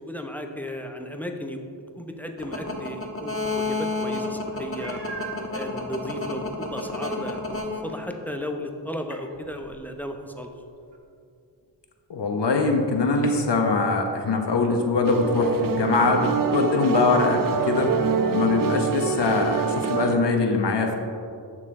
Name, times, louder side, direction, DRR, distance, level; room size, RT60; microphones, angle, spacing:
voice 1, 0.0-1.6 2.0-5.0 5.5-10.5, equal, 5° left, 4 dB, 0.8 m, -35 dB
sound 1, 2.4-8.3 9.1-9.7 13.2-13.3, left 3 dB, 30° left, 1.3 m, -29 dB
Meow, 4.8-5.5 6.2-6.3 6.8-6.9 10.9-11.0, right 5 dB, 65° right, 1.1 m, -38 dB
voice 2, 12.1-18.0 18.3-21.0, left 3 dB, 65° left, 3 dB, 1.1 m, -22 dB
sound 2, 15.0-20.1, right 6 dB, 45° right, 0.6 m, -25 dB
10.5 x 6.6 x 3.7 m, 2.4 s
wide cardioid pair, 75°, 45 cm